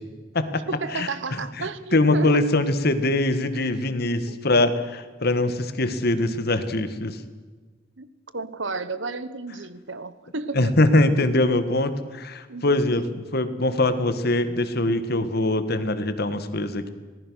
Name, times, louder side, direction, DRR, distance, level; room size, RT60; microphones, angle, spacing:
voice 1, 0.7-2.5 4.3-4.4 8.0-8.1 8.3-10.7 12.5-12.7 12.9-13.1, right 3 dB, 65° right, 14 dB, 1.3 m, -32 dB
voice 2, 1.6-7.2 10.5-16.9, left 2 dB, 55° left, 10 dB, 1.7 m, -23 dB
25.5 x 18.5 x 6.4 m, 1.4 s
head